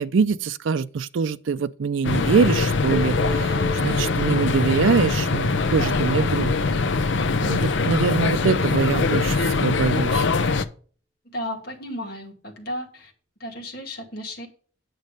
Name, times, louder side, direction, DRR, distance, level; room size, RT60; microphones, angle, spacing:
voice 1, 0.0-6.5 7.4-10.3, right 5 dB, 80° right, 0.4 m, -24 dB
sound 1, 2.0-10.7, left 4 dB, 75° left, 0.7 m, -22 dB
sound 2, 2.9-7.0, equal, ahead, 0.5 m, -37 dB
voice 2, 11.2-13.1 13.4-14.5, left 1 dB, 50° left, 2.2 m, -34 dB
9.2 x 6.3 x 5.2 m
head